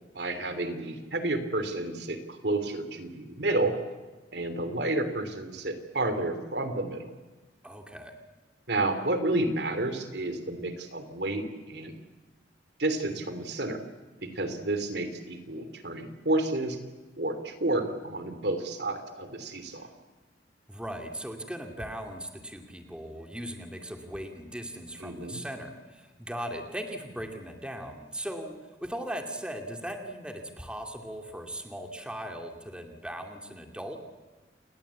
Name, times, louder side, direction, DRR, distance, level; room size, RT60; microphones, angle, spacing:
voice 1, 0.1-3.7 4.3-7.1 8.7-12.0 12.8-13.8 14.2-16.8 17.2-19.9 25.0-25.4, right 2 dB, 65° right, 9 dB, 3.0 m, -30 dB
voice 2, 7.6-8.2 20.7-34.0, equal, 5° right, 4 dB, 2.3 m, -38 dB
29.0 x 20.0 x 8.4 m, 1.2 s
head